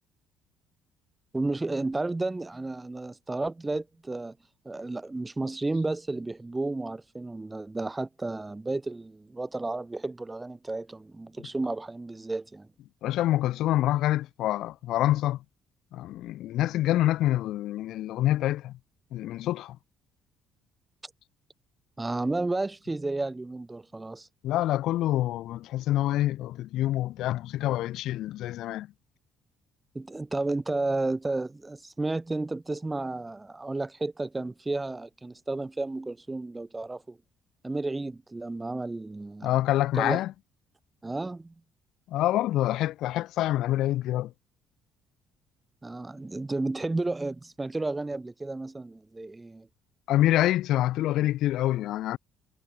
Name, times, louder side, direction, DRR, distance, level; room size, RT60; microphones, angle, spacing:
voice 1, 1.3-4.4 4.7-12.7 22.0-24.3 30.0-37.2 37.6-39.6 39.9-40.2 41.0-41.5 45.8-49.7, right 2 dB, 15° right, 6.9 m, -32 dB
voice 2, 13.0-15.4 15.9-18.7 19.1-19.8 24.4-28.9 39.4-40.3 42.1-44.3 50.1-52.2, left 14 dB, 75° left, 5.3 m, -26 dB
cardioid pair, 90°, 0 cm